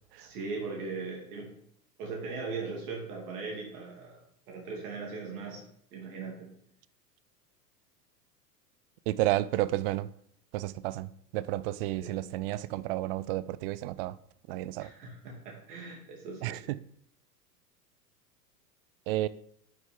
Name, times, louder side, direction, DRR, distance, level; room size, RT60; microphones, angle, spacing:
voice 1, 0.2-1.5 2.0-5.6 5.9-6.5 11.9-12.2 14.8-16.6, right 4 dB, 60° right, 2.7 m, -39 dB
voice 2, 9.1-10.1 10.5-14.2 14.5-14.9 16.4-16.8 19.1-19.3, right 16 dB, 40° right, 0.4 m, -31 dB
10.0 x 6.6 x 3.6 m
hypercardioid pair, 95°, 49 cm